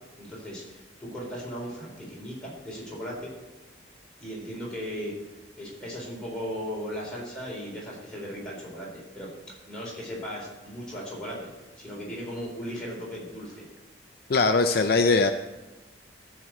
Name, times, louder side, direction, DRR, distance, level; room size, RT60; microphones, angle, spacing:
voice 1, 0.2-3.3 4.2-5.1 5.6-8.9 9.1-9.3 9.7-11.5 11.8-13.6, equal, 5° left, -6 dB, 3.8 m, -37 dB
voice 2, 14.3-15.3, left 3 dB, 55° left, 7 dB, 0.5 m, -21 dB
13.0 x 4.5 x 7.6 m, 1.2 s
head